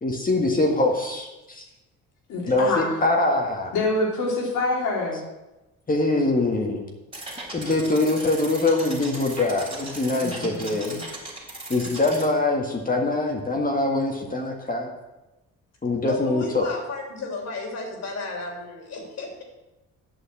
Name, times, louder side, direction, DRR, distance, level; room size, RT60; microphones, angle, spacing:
voice 1, 0.0-1.6 2.5-3.7 5.9-6.8 7.5-11.0 11.7-14.9 15.8-16.7, left 2 dB, 30° left, 1 dB, 1.7 m, -23 dB
voice 2, 2.3-2.9 3.7-5.2 10.2-11.0, left 2 dB, 90° left, -2 dB, 3.3 m, -26 dB
sound 1, 7.1-12.3, right 1 dB, 15° right, 3.2 m, -37 dB
voice 3, 16.0-19.4, left 3 dB, 60° left, 1 dB, 3.1 m, -33 dB
8.7 x 6.3 x 7.6 m, 1.0 s
cardioid pair, 90°, 30 cm